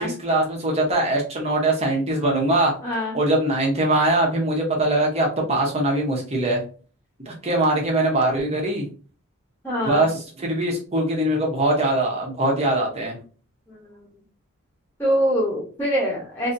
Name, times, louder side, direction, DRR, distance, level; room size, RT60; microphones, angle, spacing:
voice 1, 0.0-2.7 3.1-6.6 7.3-8.8 9.8-13.2, right 1 dB, 30° right, 0 dB, 0.8 m, -22 dB
voice 2, 2.8-3.2 9.6-10.0 13.7-13.9 15.0-16.5, equal, 10° left, -4 dB, 1.0 m, -24 dB
2.8 x 2.6 x 2.5 m, 0.38 s
head